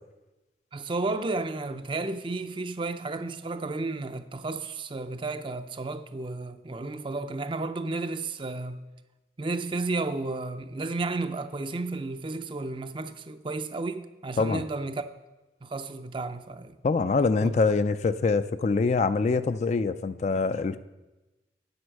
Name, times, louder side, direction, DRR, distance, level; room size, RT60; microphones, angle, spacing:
voice 1, 0.7-8.8 9.4-15.0 15.6-16.8 17.4-17.5, right 3 dB, 30° right, 0.5 m, -32 dB
voice 2, 16.8-20.8, left 4 dB, 40° left, 0.3 m, -24 dB
9.0 x 7.8 x 6.4 m
head